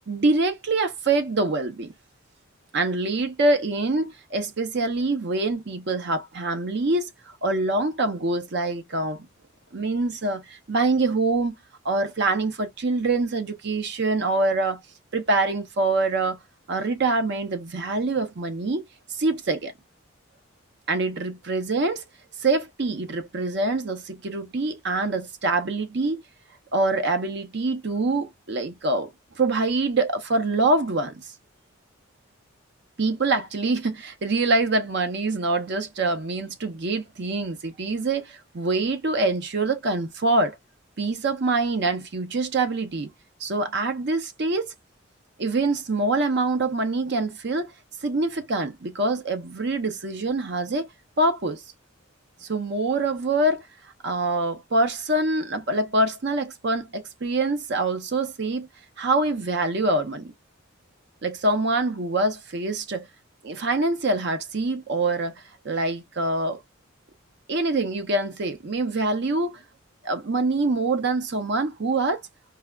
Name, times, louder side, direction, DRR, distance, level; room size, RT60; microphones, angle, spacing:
voice 1, 0.1-1.9 2.7-7.1 7.4-9.3 9.7-11.6 11.8-14.8 15.1-16.4 16.7-18.8 19.2-19.7 20.9-22.0 22.4-26.2 26.7-29.1 29.4-31.3 33.0-40.6 41.0-43.1 43.4-44.7 45.4-47.7 48.0-50.9 51.2-51.6 52.4-53.6 54.0-58.7 59.0-60.3 61.2-63.1 63.4-65.3 65.6-66.6 67.5-69.6 70.0-72.2, right 2 dB, 55° right, 0.6 m, -25 dB
4.6 x 2.2 x 2.3 m
head